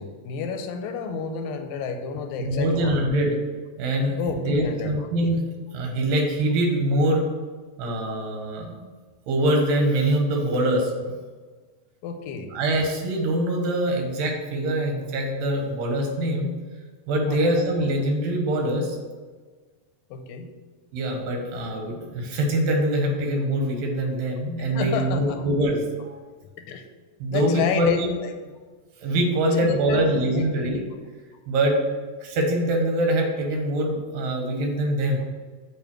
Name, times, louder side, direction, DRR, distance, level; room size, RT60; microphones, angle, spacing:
voice 1, 0.0-3.1 4.2-5.3 12.0-12.5 17.3-17.5 20.1-20.5 24.8-25.4 26.7-26.8 27.3-28.3 29.5-30.5, left 5 dB, 85° left, 6 dB, 2.3 m, -30 dB
voice 2, 2.4-3.4 3.8-7.3 7.8-8.8 9.3-11.1 12.5-16.5 17.1-19.0 20.9-26.2 27.2-28.1 29.0-30.8 31.5-31.8 32.2-35.2, right 1 dB, 80° right, 2 dB, 3.0 m, -24 dB
8.5 x 3.3 x 5.9 m, 1.4 s
omnidirectional pair, 3.9 m